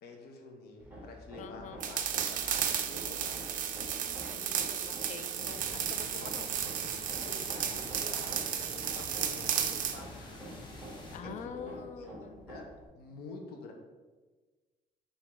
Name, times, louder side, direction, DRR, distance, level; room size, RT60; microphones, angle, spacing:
voice 1, 0.0-3.6 7.3-10.4 11.2-12.7 12.9-13.7, left 3 dB, 70° left, 2 dB, 0.8 m, -48 dB
Hammer, 0.8-12.9, right 1 dB, 10° right, 1.1 m, -48 dB
voice 2, 1.4-1.8 4.3-6.5 11.1-12.5, left 7 dB, 45° left, 10 dB, 0.4 m, -46 dB
sound 1, 1.8-10.0, right 9 dB, 50° right, 0.4 m, -34 dB
sound 2, 5.4-11.2, left 1 dB, 25° left, 0.9 m, -48 dB
4.9 x 2.6 x 3.4 m, 1.3 s
cardioid pair, 110°, 17 cm